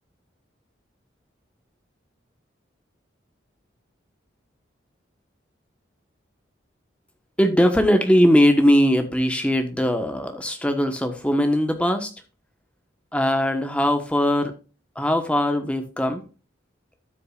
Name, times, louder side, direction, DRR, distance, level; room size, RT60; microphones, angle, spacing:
voice 1, 7.4-12.1 13.1-14.6 14.9-16.2, equal, 5° left, 6 dB, 1.2 m, -20 dB
13.0 x 6.5 x 2.5 m, 0.34 s
head